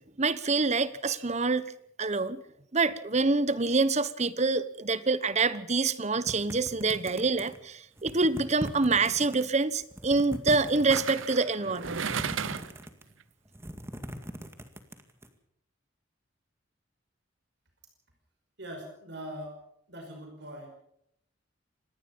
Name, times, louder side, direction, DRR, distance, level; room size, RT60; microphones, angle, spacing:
voice 1, 0.2-1.7 2.0-2.4 2.7-12.1, right 3 dB, 35° right, 15 dB, 1.1 m, -26 dB
sound 1, 6.3-7.6 8.0-9.4 9.8-11.3 11.8-13.1 13.5-15.3, equal, 15° right, 2.1 m, -40 dB
sound 2, 8.3-8.6 10.9-12.9 13.2-13.3, right 6 dB, 85° right, 0.9 m, -34 dB
voice 2, 18.6-19.6 19.9-20.7, equal, 60° right, 3 dB, 5.5 m, -41 dB
26.0 x 19.5 x 5.5 m, 0.73 s
head